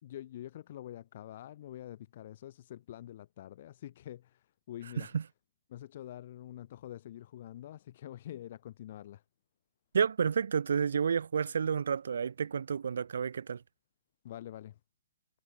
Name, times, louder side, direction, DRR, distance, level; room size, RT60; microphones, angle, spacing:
voice 1, 0.0-5.1 5.7-9.2 14.2-14.8, left 12 dB, 45° left, 4.1 m, -46 dB
voice 2, 9.9-13.6, right 6 dB, 80° right, 1.1 m, -30 dB
hypercardioid pair, 165°, 0 cm